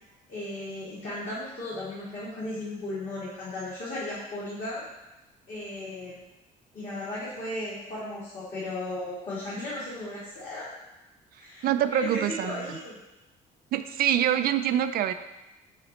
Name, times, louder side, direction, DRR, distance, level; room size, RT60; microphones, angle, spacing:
voice 1, 0.3-4.8 5.5-6.2 6.7-10.7 11.4-13.0, left 1 dB, 50° left, -9 dB, 2.1 m, -36 dB
voice 2, 11.6-12.7 13.7-15.1, right 11 dB, 60° right, 10 dB, 0.4 m, -25 dB
5.0 x 4.0 x 5.3 m, 1.0 s
cardioid pair, 110°, 17 cm